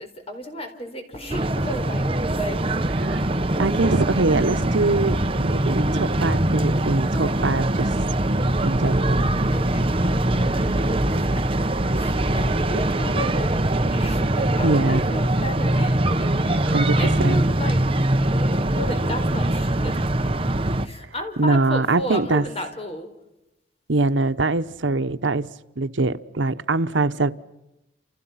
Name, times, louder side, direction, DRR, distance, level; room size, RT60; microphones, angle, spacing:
voice 1, 0.0-2.7 9.5-11.5 11.9-17.8 18.3-20.3 20.8-23.1, left 1 dB, 30° left, 4.5 m, -34 dB
sound 1, 1.3-20.9, right 1 dB, 30° right, 1.1 m, -22 dB
voice 2, 3.6-7.9 8.6-9.3 14.6-15.0 16.6-17.4 21.4-22.4 23.9-25.5 25.8-27.3, right 2 dB, 90° right, 1.0 m, -23 dB
29.5 x 29.5 x 5.8 m
head